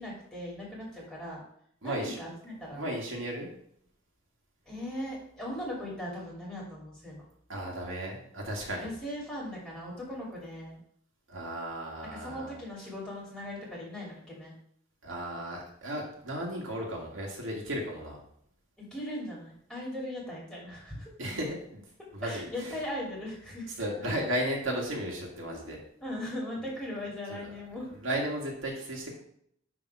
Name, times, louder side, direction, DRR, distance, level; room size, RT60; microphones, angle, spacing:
voice 1, 0.0-1.4 1.8-2.9 4.7-7.2 8.8-10.8 12.1-14.5 18.8-21.1 22.2-23.7 24.8-24.9 25.3-27.9, left 1 dB, 5° left, -5 dB, 2.5 m, -39 dB
voice 2, 1.8-2.2 2.8-3.5 7.5-8.9 11.3-12.5 15.0-18.2 21.2-21.8 22.1-22.7 23.8-25.8 27.3-27.5 27.9-29.2, right 1 dB, 70° right, -2 dB, 2.0 m, -35 dB
10.5 x 3.6 x 4.7 m, 0.68 s
head